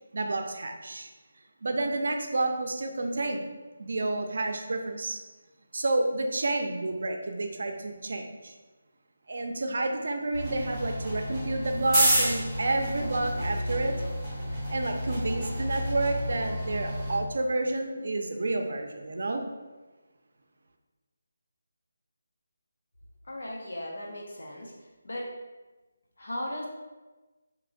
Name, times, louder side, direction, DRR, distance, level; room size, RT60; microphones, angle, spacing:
voice 1, 0.1-1.1 1.6-3.4 3.8-5.2 5.7-8.5 9.3-14.0 14.5-19.4, right 2 dB, 60° right, 4 dB, 0.5 m, -30 dB
sound 1, 10.3-17.2, equal, 5° left, 1.0 m, -30 dB
voice 2, 23.3-24.7 25.0-25.3 26.2-26.7, left 1 dB, 65° left, -1 dB, 0.7 m, -36 dB
4.8 x 3.0 x 2.5 m, 1.2 s
figure-of-eight pair, 175°, 0 cm